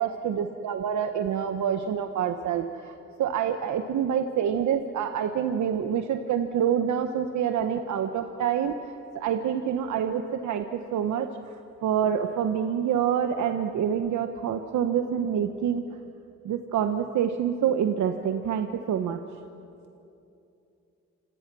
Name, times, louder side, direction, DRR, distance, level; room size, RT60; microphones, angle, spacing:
voice 1, 0.0-11.5 11.8-15.8 16.4-19.2, right 8 dB, 70° right, 6 dB, 1.2 m, -27 dB
27.0 x 26.5 x 6.2 m, 2.7 s
cardioid pair, 90°, 30 cm